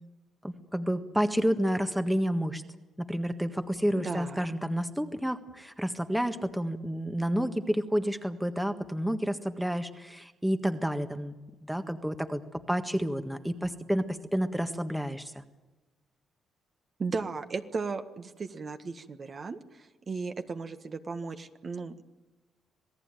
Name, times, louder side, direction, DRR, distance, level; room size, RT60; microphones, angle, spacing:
voice 1, 0.4-2.6 3.0-11.4 11.6-15.4, equal, 5° right, 7 dB, 1.6 m, -30 dB
voice 2, 3.9-4.5 17.0-22.0, right 4 dB, 40° right, 7 dB, 1.6 m, -36 dB
27.0 x 17.5 x 9.1 m, 1.2 s
cardioid pair, 90°, 0 cm